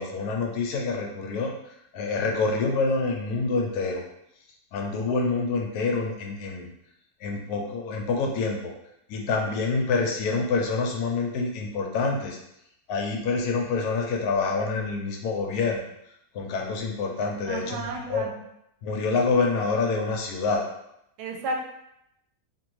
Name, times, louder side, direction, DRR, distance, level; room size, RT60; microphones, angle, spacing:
voice 1, 0.0-1.5 1.9-4.0 4.7-6.7 7.2-8.7 9.1-12.4 12.9-15.8 16.3-18.3 18.8-20.6, left 4 dB, 80° left, 1 dB, 1.1 m, -27 dB
voice 2, 17.5-18.4 21.2-21.6, right 2 dB, 80° right, 2 dB, 1.1 m, -32 dB
2.7 x 2.6 x 3.0 m, 0.79 s
omnidirectional pair, 1.7 m